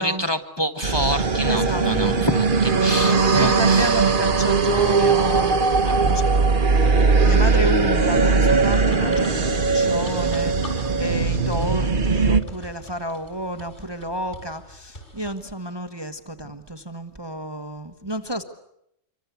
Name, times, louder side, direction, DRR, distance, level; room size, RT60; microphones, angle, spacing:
voice 1, 0.0-4.1 6.0-6.2, equal, 20° left, 6 dB, 1.5 m, -27 dB
sound 1, 0.8-12.4, right 4 dB, 45° right, 1.3 m, -19 dB
voice 2, 1.5-2.2 3.0-5.6 6.0-18.4, equal, 20° right, 7 dB, 1.2 m, -31 dB
sound 2, 3.4-15.3, left 1 dB, 45° left, 6.5 m, -45 dB
26.5 x 25.0 x 8.3 m, 0.79 s
omnidirectional pair, 1.3 m